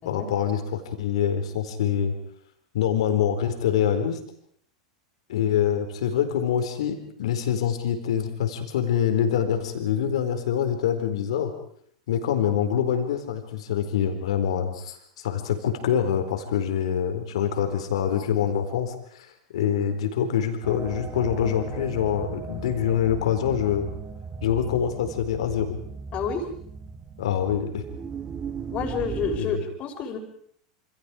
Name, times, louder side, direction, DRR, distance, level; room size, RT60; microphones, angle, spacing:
voice 1, 0.1-2.1 2.7-4.2 5.3-11.5 12.1-19.3 19.5-23.9 24.4-25.8 27.2-27.8 29.4-29.6, left 9 dB, 65° left, 6 dB, 4.3 m, -25 dB
sound 1, 20.6-29.4, right 5 dB, 25° right, 1.9 m, -37 dB
voice 2, 26.1-26.5 28.7-30.2, left 5 dB, 35° left, 4 dB, 5.5 m, -29 dB
27.5 x 27.5 x 5.0 m, 0.67 s
figure-of-eight pair, 90°, 3 cm